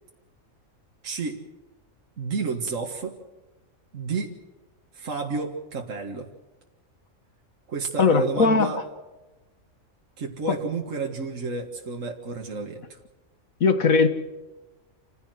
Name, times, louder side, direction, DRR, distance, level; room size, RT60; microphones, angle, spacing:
voice 1, 1.0-1.4 2.2-3.1 3.9-4.4 4.9-6.3 7.7-8.8 10.2-13.0, right 4 dB, 70° right, 1 dB, 2.1 m, -31 dB
voice 2, 8.0-8.7 13.6-14.1, left 4 dB, 90° left, 9 dB, 2.0 m, -19 dB
28.0 x 15.5 x 7.8 m, 1.1 s
omnidirectional pair, 1.4 m